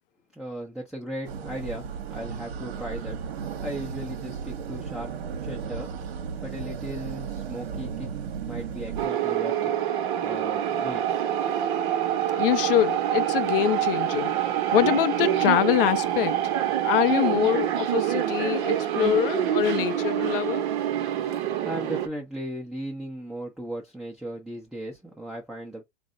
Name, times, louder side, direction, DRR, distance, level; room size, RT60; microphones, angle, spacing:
voice 1, 0.3-3.2 3.6-5.9 6.4-8.1 8.5-9.8 10.2-11.3 21.2-25.8, right 1 dB, ahead, 0.7 m, -37 dB
sound 1, 1.2-9.1, right 7 dB, 70° right, 0.9 m, -35 dB
sound 2, 9.0-22.1, right 11 dB, 50° right, 0.8 m, -26 dB
voice 2, 12.4-16.4 16.8-20.7, left 12 dB, 60° left, 0.5 m, -24 dB
4.0 x 2.1 x 3.8 m
hypercardioid pair, 125°, 32 cm